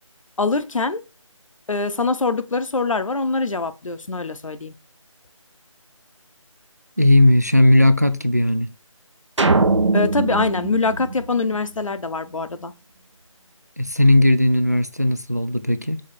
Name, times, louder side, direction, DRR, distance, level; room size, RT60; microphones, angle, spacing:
voice 1, 0.4-1.0 1.7-4.8 9.9-12.7, left 3 dB, 70° left, 0.8 m, -23 dB
voice 2, 7.0-8.7 13.8-16.0, left 1 dB, 30° right, 0.4 m, -16 dB
sound 1, 9.4-11.9, right 3 dB, 60° right, 0.9 m, -21 dB
6.3 x 3.6 x 4.3 m
figure-of-eight pair, 175°, 17 cm